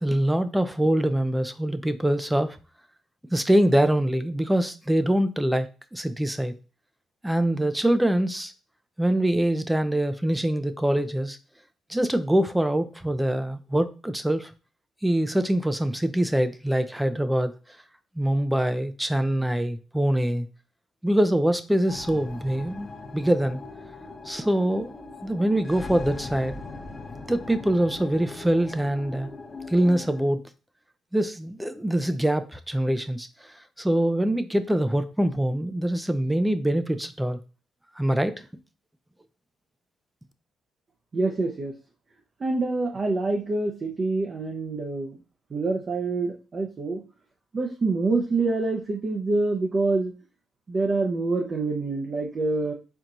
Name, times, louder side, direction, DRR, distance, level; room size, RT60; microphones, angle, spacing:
voice 1, 0.0-2.6 3.3-6.5 7.2-8.5 9.0-11.4 11.9-14.5 15.0-17.5 18.2-20.5 21.0-23.6 24.3-24.9 25.2-26.6 27.3-29.3 29.7-30.4 31.1-33.3 33.8-37.4 38.0-38.4, right 1 dB, 5° right, 0.5 m, -24 dB
sound 1, 21.9-30.2, left 3 dB, 30° left, 0.9 m, -40 dB
voice 2, 41.1-41.7 42.4-45.2 45.5-47.0 47.5-50.1 50.7-52.7, right 3 dB, 40° right, 0.8 m, -26 dB
4.5 x 4.3 x 2.6 m
cardioid pair, 90°, 0 cm